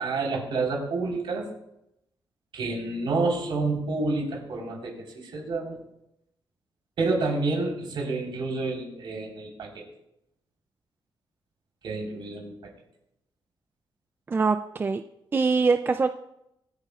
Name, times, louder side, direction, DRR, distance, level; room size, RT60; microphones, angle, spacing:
voice 1, 0.0-1.5 2.5-5.8 7.0-9.8 11.8-12.5, right 3 dB, 70° right, -1 dB, 4.2 m, -29 dB
voice 2, 14.3-15.0 15.3-16.1, right 4 dB, 25° right, 9 dB, 0.4 m, -23 dB
24.5 x 9.9 x 2.4 m, 0.82 s
wide cardioid pair, 150°, 9 cm